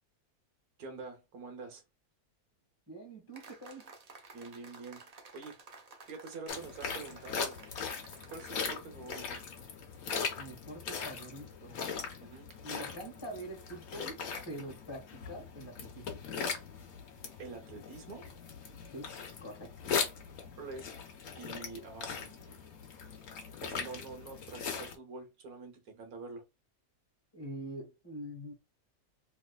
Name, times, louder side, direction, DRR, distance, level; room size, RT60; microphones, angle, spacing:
voice 1, 0.8-1.8 4.3-5.1 5.3-5.6 6.1-7.6 8.2-9.4 12.2-12.5 17.4-18.3 19.9-20.0 20.6-20.9 21.3-22.6 23.6-26.4, right 4 dB, 75° right, 1.4 m, -46 dB
voice 2, 2.9-3.9 10.4-11.8 12.6-16.2 18.9-19.1 19.4-19.7 27.3-28.5, right 1 dB, 20° left, 1.2 m, -45 dB
sound 1, 3.3-8.7, right 3 dB, 50° right, 0.5 m, -54 dB
sound 2, 6.5-25.0, left 6 dB, 70° left, 1.3 m, -40 dB
3.4 x 3.0 x 2.2 m
omnidirectional pair, 1.6 m